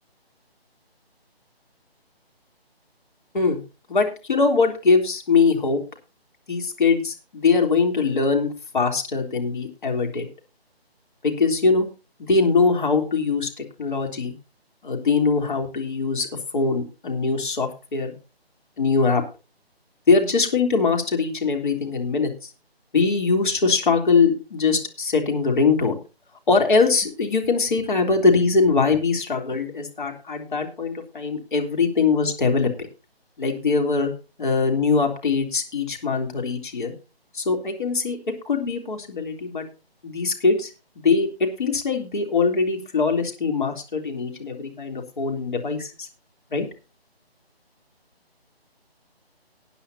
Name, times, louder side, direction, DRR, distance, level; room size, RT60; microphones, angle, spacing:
voice 1, 3.9-5.8 6.5-10.3 11.2-11.9 12.2-14.3 14.8-16.3 16.5-18.2 18.8-19.2 20.1-22.5 22.9-26.0 26.5-32.9 33.4-34.1 34.4-36.9 37.3-38.2 38.5-39.7 40.0-40.7 41.0-46.1 46.5-46.7, left 4 dB, 50° left, 3 dB, 3.5 m, -22 dB
19.5 x 9.7 x 2.8 m, 0.31 s
figure-of-eight pair, 155°, 31 cm